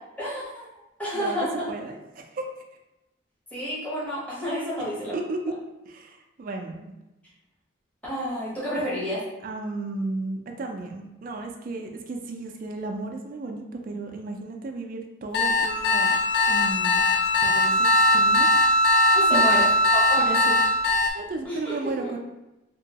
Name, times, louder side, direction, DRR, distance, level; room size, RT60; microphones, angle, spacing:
voice 1, 0.2-0.7 1.0-1.7 3.5-5.1 8.1-9.2 19.1-19.7 19.9-20.4 21.4-21.7 22.0-22.1, equal, 10° left, -9 dB, 0.9 m, -30 dB
voice 2, 1.1-2.4 5.1-5.5 5.9-6.9 9.4-16.2 16.5-17.1 17.4-17.9 18.1-18.5 19.3-19.6 20.2-20.6 21.1-22.2, right 3 dB, 45° right, 2 dB, 0.3 m, -34 dB
sound 1, 15.3-21.1, left 4 dB, 55° left, 0.3 m, -23 dB
Bowed string instrument, 15.7-20.9, equal, 80° left, 1.4 m, -22 dB
2.9 x 2.6 x 2.7 m, 0.96 s
head